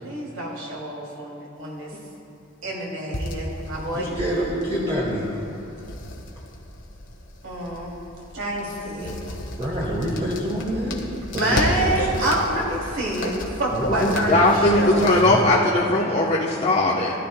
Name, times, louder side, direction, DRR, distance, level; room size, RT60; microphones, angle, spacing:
voice 1, 0.0-1.9 2.6-4.1 7.4-8.0 8.3-9.3 11.3-15.0, right 1 dB, 80° right, -4 dB, 2.8 m, -27 dB
sound 1, 3.1-15.3, left 1 dB, 65° left, 1.5 m, -34 dB
voice 2, 3.9-5.5 9.6-11.0 11.3-12.3 13.7-15.5, equal, 30° right, -5 dB, 1.4 m, -27 dB
voice 3, 13.9-17.1, left 2 dB, 35° left, -5 dB, 0.9 m, -19 dB
19.5 x 12.0 x 2.2 m, 3.0 s
head